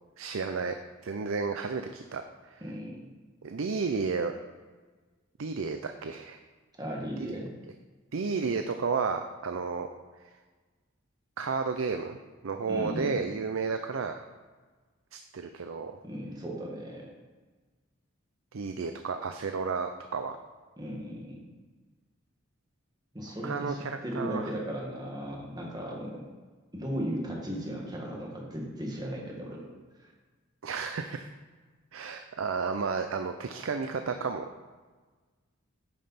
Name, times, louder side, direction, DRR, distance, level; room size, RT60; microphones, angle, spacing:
voice 1, 0.2-0.8 1.0-2.2 2.5-2.6 3.4-4.3 5.4-6.4 7.2-7.3 8.1-9.9 11.4-12.2 12.4-14.2 15.1-15.9 18.5-20.4 23.4-24.5 30.6-31.3 31.9-34.5, right 5 dB, 80° right, 7 dB, 0.5 m, -32 dB
voice 2, 2.6-3.0 6.8-7.5 12.7-13.2 16.0-17.1 20.8-21.5 23.1-26.2 26.7-29.7 30.0-30.1, equal, 20° right, -2 dB, 1.8 m, -36 dB
9.4 x 5.4 x 5.8 m, 1.4 s
head